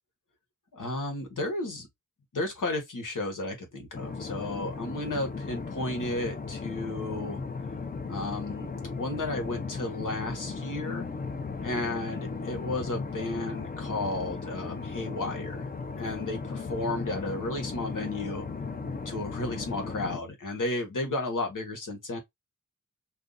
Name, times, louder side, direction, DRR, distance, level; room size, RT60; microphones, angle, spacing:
voice 1, 0.7-1.9 2.3-7.4 8.1-11.1 11.6-15.7 16.0-18.5 19.0-22.2, left 2 dB, 80° left, 1.3 m, -33 dB
sound 1, 3.9-20.2, left 4 dB, 30° left, 0.5 m, -36 dB
2.7 x 2.5 x 3.8 m
wide cardioid pair, 100°, 31 cm